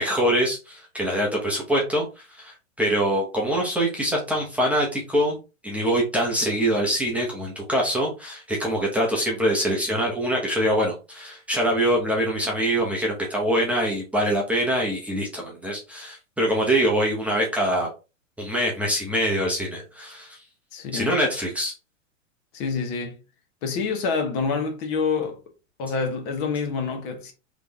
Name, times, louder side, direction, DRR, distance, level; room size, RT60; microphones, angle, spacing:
voice 1, 0.0-5.4 5.6-17.9 18.4-20.4 20.9-21.7, equal, 5° right, 1.0 m, -24 dB
voice 2, 20.7-21.2 22.5-23.2 23.6-25.4 25.8-27.3, left 5 dB, 40° left, 1.2 m, -27 dB
3.8 x 3.5 x 3.5 m
hypercardioid pair, 130°, 39 cm